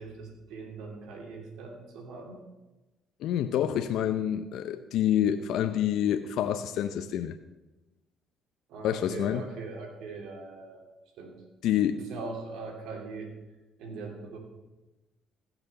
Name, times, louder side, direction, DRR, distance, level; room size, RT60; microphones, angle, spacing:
voice 1, 0.0-2.4 8.7-10.8 11.2-11.4 11.8-13.3 13.8-14.4, right 3 dB, 75° right, 2 dB, 2.9 m, -41 dB
voice 2, 3.2-7.4 8.8-9.4 11.6-12.0, left 10 dB, 75° left, 9 dB, 0.6 m, -27 dB
16.0 x 6.1 x 6.8 m, 1.1 s
supercardioid pair, 75°, 0 cm